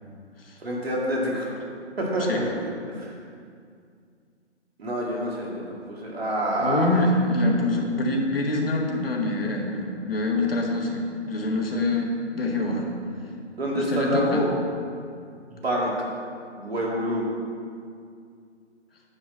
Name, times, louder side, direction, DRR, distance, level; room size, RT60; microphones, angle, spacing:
voice 1, 0.6-1.5 2.0-2.5 2.9-3.1 4.8-6.9 13.6-14.5 15.5-15.9 16.5-17.2, right 1 dB, 60° right, -3 dB, 2.2 m, -27 dB
voice 2, 6.6-12.9 13.7-14.4, left 2 dB, 55° left, 0 dB, 1.7 m, -25 dB
9.6 x 4.7 x 7.4 m, 2.3 s
figure-of-eight pair, 140°, 35 cm